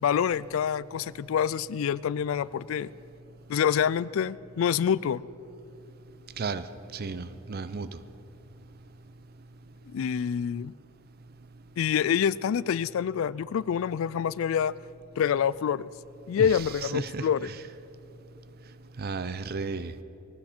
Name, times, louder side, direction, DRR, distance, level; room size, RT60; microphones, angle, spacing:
voice 1, 0.0-2.9 3.5-5.2 9.9-10.7 11.8-14.7 15.2-15.9 16.3-17.5, left 8 dB, 65° left, 20 dB, 0.3 m, -26 dB
voice 2, 6.9-7.9 16.4-17.6 19.0-19.9, right 4 dB, 45° right, 13 dB, 0.6 m, -34 dB
20.5 x 15.5 x 4.4 m, 2.9 s
head